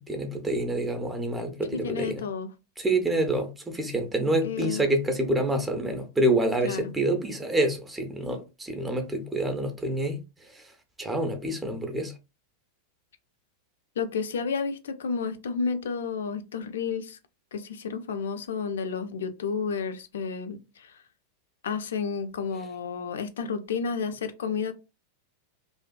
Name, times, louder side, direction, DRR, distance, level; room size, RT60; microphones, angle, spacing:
voice 1, 0.1-2.2 2.8-10.2 10.5-10.6 11.0-12.1, right 1 dB, 10° right, 0.5 m, -27 dB
voice 2, 1.7-2.5 4.4-4.8 6.6-6.9 14.0-17.2 17.5-21.0 21.6-24.7, left 5 dB, 65° left, 0.4 m, -31 dB
2.5 x 2.2 x 2.3 m
figure-of-eight pair, 90°, 0 cm